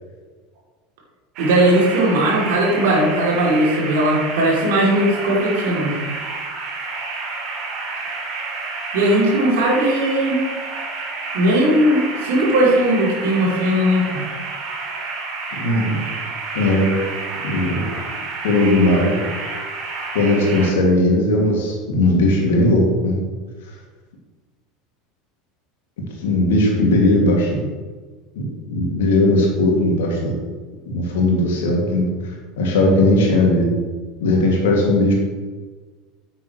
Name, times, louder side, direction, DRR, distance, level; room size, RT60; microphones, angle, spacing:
sound 1, 1.4-20.7, right 3 dB, 50° right, 2.7 m, -30 dB
voice 1, 1.4-6.1 8.9-10.4 11.3-14.1, right 1 dB, 65° right, -3 dB, 3.1 m, -18 dB
voice 2, 15.5-16.0 16.5-16.9 17.4-17.9 18.4-19.2 20.1-23.2 26.2-27.7 28.4-30.4 30.9-32.1 32.6-33.7 34.2-35.1, left 1 dB, 65° left, -1 dB, 2.5 m, -18 dB
9.5 x 8.8 x 3.2 m, 1.4 s
figure-of-eight pair, 75°, 0 cm